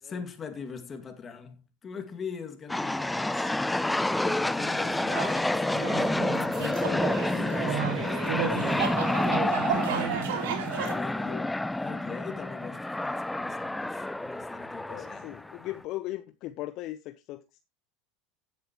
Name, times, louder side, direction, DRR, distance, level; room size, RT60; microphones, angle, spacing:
voice 1, 0.0-4.0 4.3-9.7 10.3-15.3, left 6 dB, 30° left, 2.2 m, -42 dB
sound 1, 2.7-15.8, left 1 dB, 5° left, 0.4 m, -29 dB
voice 2, 4.2-4.6 6.4-7.0 11.3-11.5 14.9-17.6, left 15 dB, 55° left, 0.8 m, -39 dB
sound 2, 4.8-10.9, right 8 dB, 80° right, 2.2 m, -32 dB
16.0 x 7.6 x 3.0 m
hypercardioid pair, 95°, 0 cm